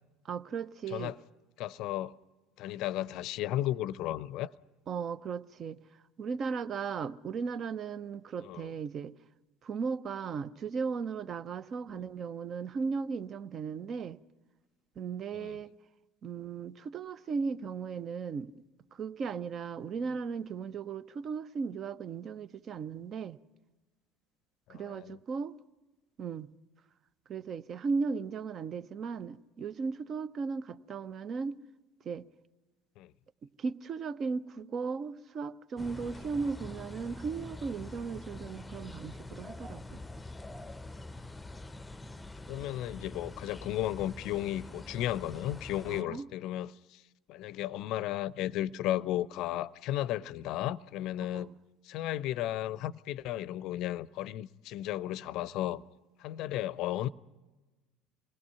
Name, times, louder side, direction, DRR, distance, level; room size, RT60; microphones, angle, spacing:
voice 1, 0.2-1.1 4.9-5.8 6.2-9.1 9.6-14.2 15.0-15.7 16.2-18.5 18.9-23.4 24.7-25.6 26.2-26.5 27.3-31.6 32.0-32.3 33.6-40.0 45.9-46.3 51.2-51.5, right 5 dB, 40° right, 0.8 m, -36 dB
voice 2, 1.6-2.1 2.6-4.5 8.4-8.7 15.3-15.6 24.7-25.2 33.0-33.1 42.5-47.0 47.3-51.5 51.8-55.8 56.2-57.1, left 13 dB, 55° left, 0.6 m, -34 dB
sound 1, 35.8-46.0, left 2 dB, 10° left, 0.7 m, -45 dB
27.0 x 20.0 x 5.8 m
figure-of-eight pair, 65°, 0 cm